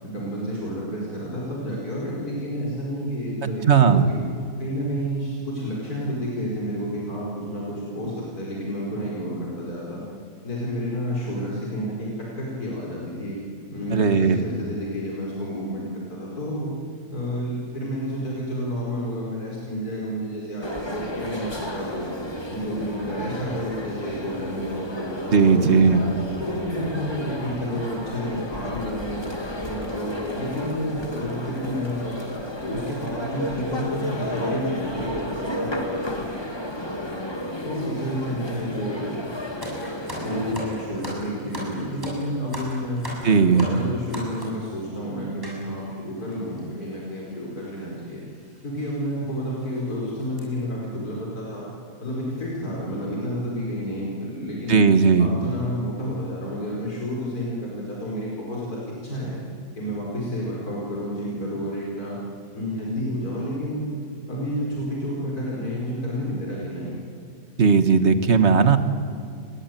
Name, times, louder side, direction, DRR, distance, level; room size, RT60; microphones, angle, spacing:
voice 1, 0.0-4.2 4.6-10.0 10.4-13.4 13.7-16.7 17.1-22.1 22.5-26.0 26.4-29.2 29.6-32.2 32.6-37.2 37.6-39.1 40.1-43.1 43.4-48.2 48.6-51.7 52.0-54.9 55.2-59.4 59.8-62.2 62.5-63.9 64.3-67.0, equal, 70° left, -4 dB, 5.6 m, -30 dB
voice 2, 3.4-4.0 13.9-14.4 25.3-26.0 43.2-43.7 54.7-55.3 67.6-68.8, right 5 dB, 45° right, 10 dB, 1.7 m, -17 dB
sound 1, 20.6-40.5, left 1 dB, 15° left, 2.5 m, -32 dB
sound 2, 39.6-44.7 45.4-45.6 46.3-46.4 46.6-46.8 47.7-47.9 48.4-48.5 49.1-49.2 49.6-49.8 50.2-50.4, equal, 15° right, 7.2 m, -36 dB
28.5 x 22.5 x 9.3 m, 2.3 s
omnidirectional pair, 1.7 m